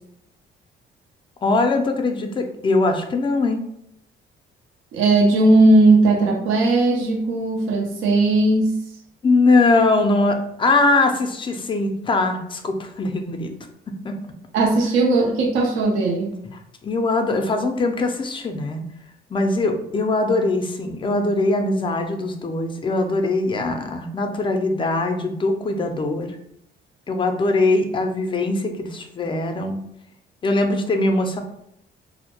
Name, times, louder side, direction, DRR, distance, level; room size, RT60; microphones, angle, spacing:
voice 1, 1.4-3.6 9.2-13.5 13.9-14.1 16.8-18.8 19.3-26.4 27.1-29.8 30.4-31.4, left 2 dB, 25° left, 5 dB, 0.4 m, -21 dB
voice 2, 4.9-8.8 14.5-16.4, right 2 dB, 90° right, -1 dB, 0.5 m, -17 dB
2.1 x 2.0 x 2.8 m, 0.76 s
cardioid pair, 90°, 20 cm